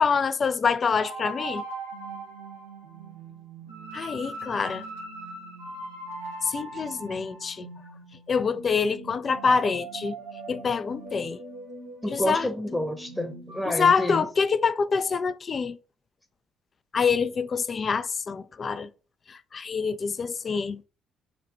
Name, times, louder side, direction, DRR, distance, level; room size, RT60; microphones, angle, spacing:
voice 1, 0.0-1.6 3.9-4.8 6.5-7.7 8.3-10.2 10.5-11.4 12.1-12.5 13.7-15.8 16.9-18.9 19.3-20.8, left 5 dB, 40° left, 0.3 m, -26 dB
sound 1, 1.0-13.7, right 2 dB, 75° right, 1.1 m, -40 dB
voice 2, 12.0-14.3, left 1 dB, 5° left, 0.8 m, -29 dB
4.9 x 2.8 x 3.1 m
figure-of-eight pair, 50°, 0 cm